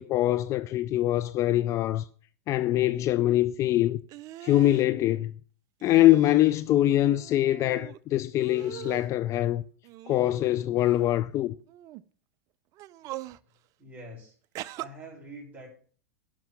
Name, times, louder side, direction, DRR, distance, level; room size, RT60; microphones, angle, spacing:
voice 1, 0.0-2.1 2.5-4.0 4.4-5.3 5.8-9.6 10.1-11.5, left 14 dB, 35° left, 0.4 m, -23 dB
sound 1, 4.1-4.9 5.8-6.6 6.9-8.0 8.4-9.1 9.8-10.9 11.7-12.0 12.7-13.4 14.5-14.9, right 15 dB, 40° right, 0.5 m, -42 dB
voice 2, 13.8-14.3 14.7-15.7, right 1 dB, 20° right, 6.3 m, -45 dB
11.0 x 5.9 x 7.3 m
hypercardioid pair, 120°, 9 cm